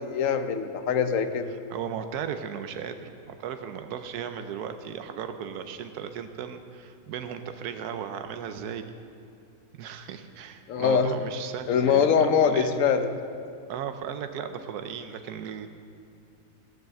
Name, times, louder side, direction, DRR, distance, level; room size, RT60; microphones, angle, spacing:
voice 1, 0.0-1.5 10.7-11.1 11.7-13.1, left 7 dB, 65° left, 9 dB, 1.1 m, -23 dB
voice 2, 1.7-9.0 9.8-12.8 13.7-15.7, right 8 dB, 90° right, 8 dB, 1.2 m, -36 dB
16.0 x 7.2 x 7.6 m, 2.5 s
omnidirectional pair, 1.6 m